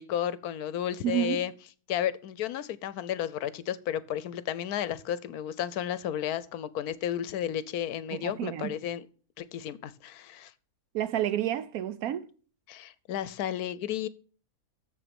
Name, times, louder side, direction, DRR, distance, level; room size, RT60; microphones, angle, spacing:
voice 1, 0.0-1.5 1.9-9.1 9.4-10.5 12.7-14.1, left 10 dB, 75° left, 1.1 m, -33 dB
voice 2, 1.0-1.4 8.1-8.7 10.9-12.3, right 12 dB, 70° right, 1.1 m, -30 dB
7.2 x 7.0 x 6.9 m
omnidirectional pair, 1.7 m